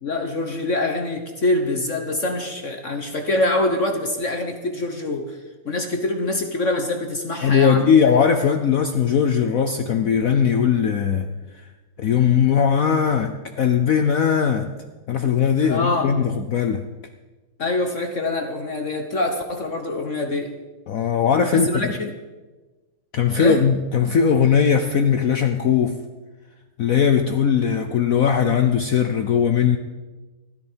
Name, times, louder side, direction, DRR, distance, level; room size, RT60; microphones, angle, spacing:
voice 1, 0.0-5.4 5.6-7.9 15.6-16.1 17.6-20.5 21.5-22.1 23.4-23.6, left 2 dB, 45° left, 5 dB, 1.1 m, -25 dB
voice 2, 7.4-11.3 12.0-14.7 15.1-16.8 20.9-21.9 23.1-26.0 26.8-29.8, left 7 dB, 90° left, 6 dB, 0.7 m, -19 dB
16.0 x 13.5 x 4.5 m, 1.2 s
omnidirectional pair, 2.4 m